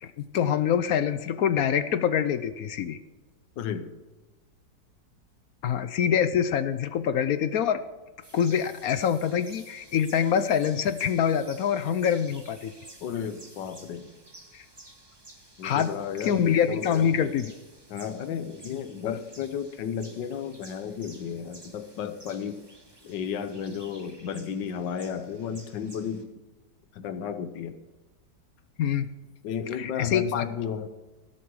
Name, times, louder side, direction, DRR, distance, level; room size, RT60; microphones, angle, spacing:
voice 1, 0.0-3.0 5.6-7.8 8.3-12.8 14.5-14.6 15.6-15.9 16.2-17.5 28.8-29.1 29.7-30.5, left 8 dB, 65° left, 12 dB, 1.0 m, -25 dB
voice 2, 3.6-3.9 13.0-14.1 15.6-16.9 17.9-22.6 23.0-26.3 26.9-27.8 29.4-30.9, left 7 dB, 85° left, 10 dB, 1.6 m, -33 dB
sound 1, 8.2-26.2, right 2 dB, 15° right, 1.1 m, -52 dB
17.5 x 7.4 x 4.8 m, 1.2 s
omnidirectional pair, 1.9 m